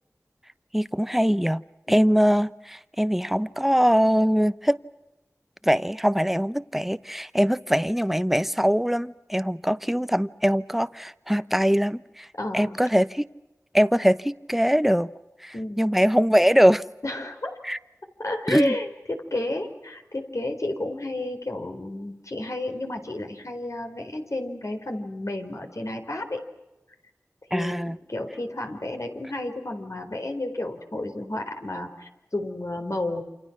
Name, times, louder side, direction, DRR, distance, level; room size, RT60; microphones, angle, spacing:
voice 1, 0.7-1.6 1.9-4.8 5.6-12.3 12.5-13.2 13.7-15.1 15.4-16.8 17.6-17.8 18.5-18.7 27.5-28.0, equal, 5° right, 14 dB, 0.9 m, -22 dB
voice 2, 12.3-12.8 15.5-15.8 17.0-17.6 18.2-26.4 27.5-33.2, left 1 dB, 65° left, 4 dB, 4.4 m, -31 dB
28.5 x 27.5 x 6.1 m, 0.97 s
wide cardioid pair, 40°, 6 cm